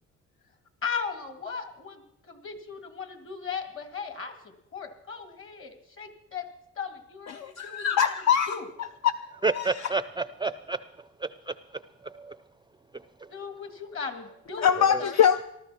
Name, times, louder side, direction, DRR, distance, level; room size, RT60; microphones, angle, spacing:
voice 1, 0.8-6.5 6.8-8.1 8.5-8.6 13.3-14.7 15.0-15.2, left 6 dB, 45° left, 2.1 m, -37 dB
voice 2, 7.3-9.1 9.5-9.9 14.6-15.4, left 8 dB, 60° left, 0.6 m, -24 dB
voice 3, 9.4-10.8 11.2-11.5 12.0-12.4, right 3 dB, 15° right, 0.4 m, -29 dB
19.5 x 13.0 x 4.3 m
cardioid pair, 90°, 30 cm